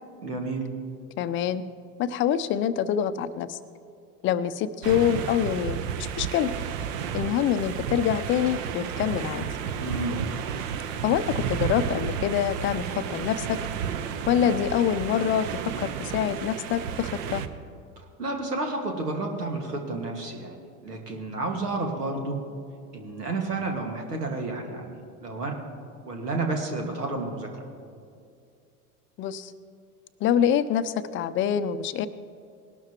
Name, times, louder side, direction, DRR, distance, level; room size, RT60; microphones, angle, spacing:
voice 1, 0.2-0.7 9.8-10.2 18.0-22.4 22.9-25.6 26.1-27.7, right 2 dB, 90° right, 3 dB, 1.9 m, -31 dB
voice 2, 1.2-1.6 2.0-3.6 4.2-6.5 7.1-9.4 11.0-13.6 14.3-15.5 15.8-17.4 29.2-29.5 30.2-32.1, left 9 dB, 25° left, 13 dB, 0.5 m, -25 dB
sound 1, 4.8-17.5, right 8 dB, 55° right, 0.9 m, -32 dB
19.5 x 12.0 x 3.0 m, 2.3 s
hypercardioid pair, 90°, 46 cm